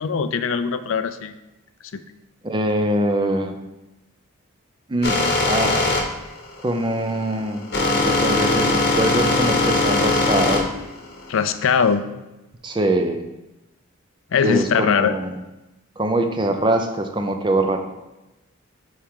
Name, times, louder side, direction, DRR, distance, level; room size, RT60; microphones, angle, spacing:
voice 1, 0.0-1.4 1.9-2.0 11.3-12.0 14.3-15.2, left 6 dB, 65° left, 11 dB, 0.4 m, -21 dB
voice 2, 2.4-3.6 4.9-5.9 6.6-7.7 8.0-10.7 12.6-13.2 14.4-15.3 16.0-17.8, right 1 dB, 20° right, 5 dB, 0.5 m, -23 dB
sound 1, 5.0-11.9, left 2 dB, 45° left, 0.9 m, -21 dB
7.2 x 4.8 x 3.7 m, 1.0 s
head